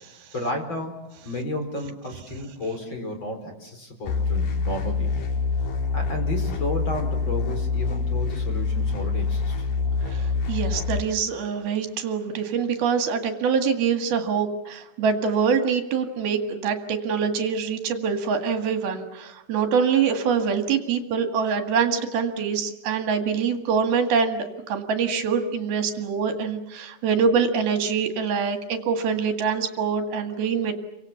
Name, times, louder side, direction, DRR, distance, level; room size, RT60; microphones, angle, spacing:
voice 1, 0.3-5.1 5.9-9.7, left 1 dB, 30° left, 4 dB, 4.6 m, -32 dB
sound 1, 4.0-11.0, left 4 dB, 55° left, 3.3 m, -26 dB
voice 2, 10.1-30.8, right 6 dB, 75° right, 7 dB, 3.7 m, -24 dB
30.0 x 25.5 x 7.1 m, 0.91 s
omnidirectional pair, 4.5 m